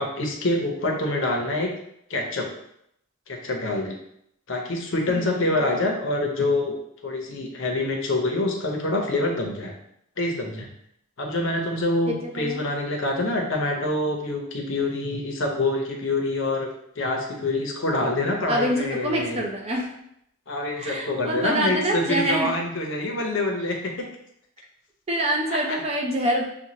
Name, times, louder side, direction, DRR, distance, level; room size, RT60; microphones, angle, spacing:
voice 1, 0.0-1.7 2.1-2.5 3.3-4.0 4.5-6.8 7.0-9.8 10.2-10.7 11.2-16.7 17.0-19.4 20.5-24.1 25.5-25.8, left 2 dB, 55° left, 1 dB, 0.8 m, -26 dB
voice 2, 5.1-5.7 12.1-12.6 18.5-19.9 20.8-22.5 25.1-26.4, equal, 25° right, 0 dB, 0.6 m, -26 dB
6.0 x 2.4 x 2.8 m, 0.74 s
head